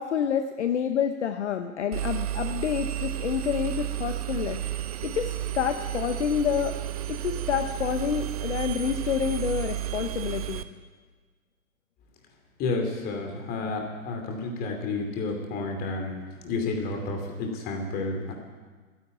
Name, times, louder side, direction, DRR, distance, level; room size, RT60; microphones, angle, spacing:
voice 1, 0.0-4.6 5.0-6.8 7.1-10.6, left 8 dB, 55° left, 8 dB, 0.9 m, -28 dB
Engine, 1.9-10.6, right 13 dB, 30° right, 0.5 m, -32 dB
voice 2, 12.6-16.1 16.4-18.3, left 3 dB, 20° left, 3 dB, 2.6 m, -30 dB
12.5 x 10.5 x 9.4 m, 1.4 s
figure-of-eight pair, 125°, 41 cm